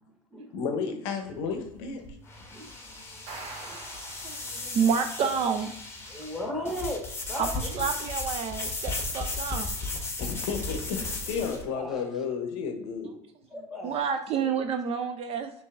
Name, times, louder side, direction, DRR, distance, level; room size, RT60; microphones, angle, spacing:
voice 1, 0.0-0.6 2.5-3.9 4.1-4.3 4.6-4.7 6.1-8.0 11.4-12.1 13.5-14.0 14.3-14.5, left 1 dB, ahead, 0 dB, 1.3 m, -38 dB
voice 2, 0.5-2.0 10.2-13.1, left 5 dB, 60° left, 6 dB, 0.7 m, -32 dB
sound 1, 1.3-11.6, left 3 dB, 15° left, 0.9 m, -35 dB
sound 2, 3.1-5.0, right 3 dB, 55° right, 1.0 m, -44 dB
voice 3, 4.2-5.7 7.4-9.7 13.8-15.5, right 6 dB, 35° right, 7 dB, 0.4 m, -29 dB
6.5 x 2.6 x 2.4 m, 0.78 s
hypercardioid pair, 75°, 17 cm